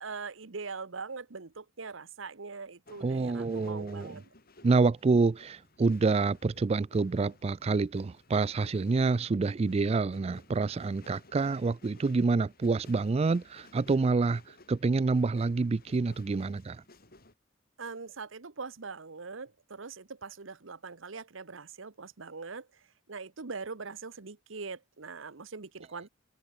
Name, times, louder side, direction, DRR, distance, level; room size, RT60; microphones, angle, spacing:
voice 1, 0.0-4.3 17.8-26.1, right 4 dB, 75° right, 1.1 m, -42 dB
sound 1, 2.9-17.3, left 2 dB, 50° left, 5.2 m, -58 dB
voice 2, 3.0-4.2 4.6-16.8, right 4 dB, 30° right, 0.4 m, -27 dB
head